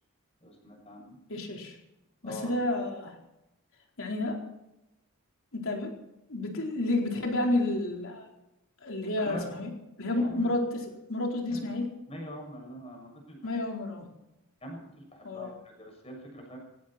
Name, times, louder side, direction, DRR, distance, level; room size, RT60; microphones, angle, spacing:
voice 1, 0.4-1.2 2.2-2.7 9.2-9.6 10.1-10.5 11.5-11.7 12.1-13.6 14.6-16.6, equal, 30° left, 1 dB, 6.7 m, -43 dB
voice 2, 1.3-1.8 2.2-3.2 4.0-4.4 5.5-5.9 6.3-8.3 8.8-9.7 10.0-11.9 13.4-14.1 15.2-15.5, left 2 dB, 65° left, 1 dB, 4.3 m, -30 dB
18.5 x 16.5 x 4.4 m, 0.90 s
head